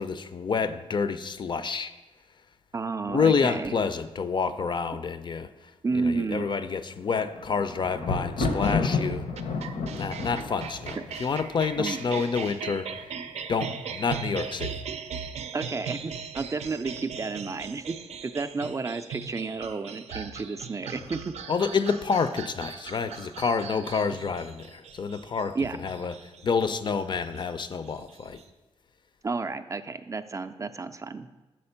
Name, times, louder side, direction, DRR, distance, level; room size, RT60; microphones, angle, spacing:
voice 1, 0.0-1.9 3.1-9.3 9.9-12.9 13.5-14.8 21.5-26.2 26.4-28.4, left 5 dB, 45° left, 11 dB, 0.4 m, -28 dB
voice 2, 2.7-3.7 5.8-6.5 11.8-12.0 15.5-18.0 18.2-21.3 25.6-25.8 29.2-31.4, right 4 dB, 30° right, 9 dB, 0.3 m, -31 dB
Thunder, 7.0-12.2 12.9-13.4 13.7-13.8, left 4 dB, 80° left, 0.7 m, -30 dB
sound 1, 8.6-28.4, right 6 dB, 90° right, 0.5 m, -39 dB
6.4 x 4.3 x 5.6 m, 1.1 s
cardioid pair, 85°, 11 cm